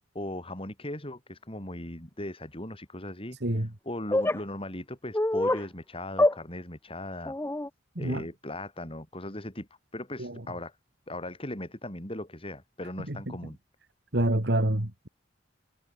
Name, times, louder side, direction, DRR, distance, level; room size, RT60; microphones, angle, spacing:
voice 1, 0.1-7.3 8.0-10.8 11.1-13.6, left 1 dB, 30° left, 7.8 m, -38 dB
sound 1, 4.1-4.4 5.1-5.6 6.2-6.4 7.3-7.7, left 1 dB, 15° left, 0.9 m, -25 dB
voice 2, 14.1-15.1, right 1 dB, 60° right, 2.8 m, -26 dB
head